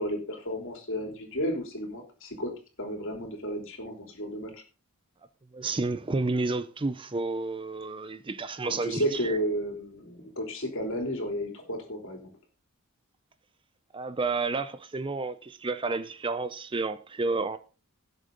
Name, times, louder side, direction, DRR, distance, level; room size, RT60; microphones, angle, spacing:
voice 1, 0.0-2.5 2.8-4.5 8.6-12.3, equal, 60° left, 3.4 m, -32 dB
voice 2, 5.5-9.4 13.9-17.6, right 3 dB, 20° right, 0.5 m, -31 dB
17.5 x 7.5 x 3.9 m
head